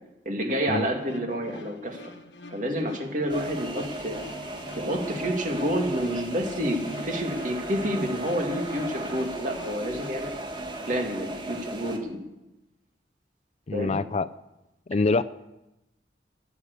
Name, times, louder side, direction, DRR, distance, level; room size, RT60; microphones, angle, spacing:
voice 1, 0.3-2.1 2.5-4.2 4.8-10.4 10.8-12.2 13.7-14.0, equal, 45° right, 2 dB, 2.4 m, -29 dB
sound 1, 0.8-10.1, left 2 dB, 90° left, 1.4 m, -46 dB
sound 2, 3.3-12.0, right 2 dB, 25° right, 1.7 m, -36 dB
voice 2, 13.7-14.3 14.9-15.2, left 3 dB, 35° left, 16 dB, 0.4 m, -25 dB
14.0 x 9.6 x 8.2 m, 0.96 s
head